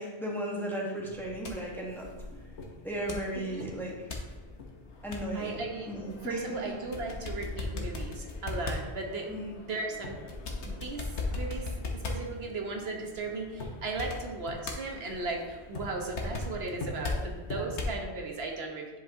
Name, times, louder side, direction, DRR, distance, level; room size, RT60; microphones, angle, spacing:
voice 1, 0.0-2.1 2.8-4.0 5.0-5.6 5.9-6.7 9.3-9.6 17.1-17.2 17.5-17.7 18.5-18.6, right 1 dB, ahead, -2 dB, 1.1 m, -36 dB
sound 1, 1.1-18.0, left 2 dB, 85° left, 1.3 m, -39 dB
voice 2, 5.3-5.9 6.2-9.3 9.6-10.2 10.6-11.1 11.4-18.9, right 3 dB, 65° right, 1 dB, 1.2 m, -36 dB
10.0 x 5.2 x 2.7 m, 1.2 s
omnidirectional pair, 1.1 m